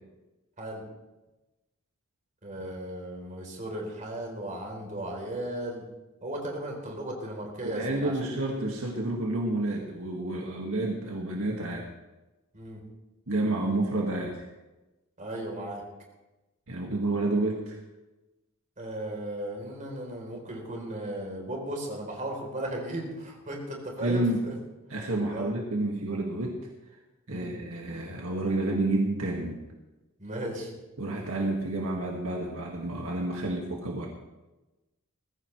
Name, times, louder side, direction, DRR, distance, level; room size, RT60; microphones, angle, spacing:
voice 1, 2.4-5.8 6.2-8.3 12.5-12.8 15.2-15.8 18.8-24.5 25.3-25.5 27.3-27.5 30.2-30.7, right 1 dB, 35° right, 0 dB, 3.8 m, -36 dB
voice 2, 7.6-11.9 13.3-14.5 16.7-17.8 24.0-24.4 24.9-26.7 27.3-29.6 31.0-34.1, right 2 dB, 65° right, -1 dB, 1.9 m, -29 dB
21.0 x 15.0 x 3.3 m, 1.1 s
head